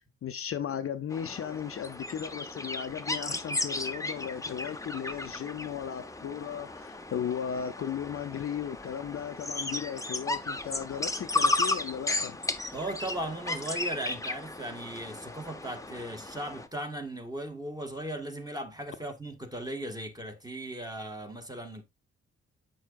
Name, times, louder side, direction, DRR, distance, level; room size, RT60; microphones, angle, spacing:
voice 1, 0.0-12.4, left 8 dB, 45° left, 0.7 m, -36 dB
sound 1, 1.1-16.7, left 2 dB, 10° left, 0.9 m, -34 dB
voice 2, 12.7-21.8, right 1 dB, 10° right, 1.8 m, -37 dB
8.5 x 6.3 x 2.5 m
hypercardioid pair, 40°, 31 cm